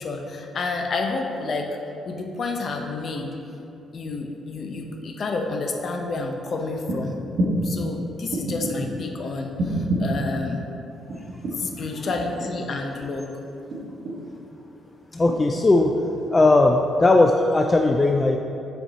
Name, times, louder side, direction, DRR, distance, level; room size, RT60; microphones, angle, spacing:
voice 1, 0.0-1.8 2.1-3.3 3.9-7.2 7.6-10.6 11.6-13.3, left 3 dB, 50° left, 3 dB, 0.7 m, -29 dB
sound 1, 6.9-7.0 7.4-7.7 8.3-8.9 9.6-10.2 11.1-11.7 12.1-12.7 13.7-14.4 15.3-15.4, right 1 dB, 60° right, 1.2 m, -26 dB
voice 2, 15.1-15.9 16.3-18.4, left 2 dB, 25° left, 3 dB, 0.3 m, -18 dB
5.5 x 4.4 x 4.3 m, 2.7 s
cardioid pair, 90°, 0 cm